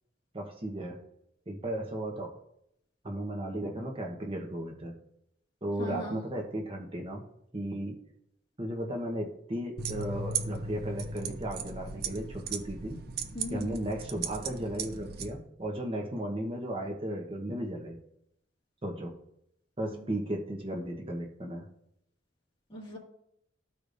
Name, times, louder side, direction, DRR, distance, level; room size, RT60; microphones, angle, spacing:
voice 1, 0.3-1.0 1.5-2.3 3.0-4.9 5.6-7.2 7.5-8.0 8.6-13.0 13.5-18.0 18.8-19.1 19.8-21.7, right 1 dB, 30° right, 1 dB, 1.1 m, -35 dB
voice 2, 5.8-6.2 13.3-13.7 19.9-20.0 22.7-23.0, left 1 dB, 25° left, -3 dB, 1.9 m, -38 dB
sound 1, 9.8-15.3, right 5 dB, 55° right, 0.7 m, -37 dB
14.0 x 4.9 x 2.6 m, 0.75 s
head